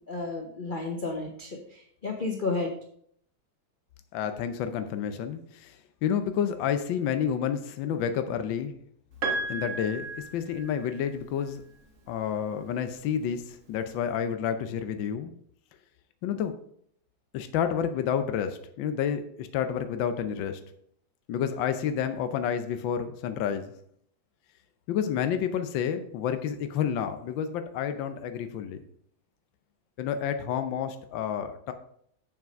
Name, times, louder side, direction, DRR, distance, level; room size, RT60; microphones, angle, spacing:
voice 1, 0.1-2.7, left 3 dB, 40° left, 2 dB, 0.7 m, -32 dB
voice 2, 4.1-8.8 9.5-10.1 10.3-11.6 12.1-15.3 16.2-16.5 17.3-20.6 21.3-23.7 24.9-28.8 30.0-31.7, left 8 dB, 80° left, 9 dB, 1.5 m, -30 dB
Piano, 9.2-11.2 12.5-12.6, right 3 dB, 45° right, 1.6 m, -33 dB
7.3 x 6.0 x 5.2 m, 0.65 s
omnidirectional pair, 2.1 m